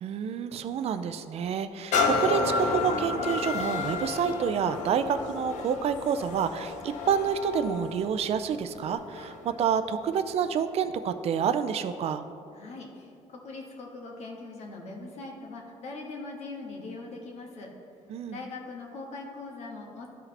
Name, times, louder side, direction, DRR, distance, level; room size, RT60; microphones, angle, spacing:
voice 1, 0.0-12.2 18.1-18.4, right 7 dB, 60° right, 10 dB, 0.4 m, -28 dB
sound 1, 1.9-9.5 10.1-10.2, left 4 dB, 85° left, 0.7 m, -31 dB
voice 2, 12.5-17.7 18.3-20.1, left 3 dB, 65° left, 0 dB, 1.4 m, -41 dB
13.0 x 4.8 x 3.3 m, 2.7 s
cardioid pair, 125°, 12 cm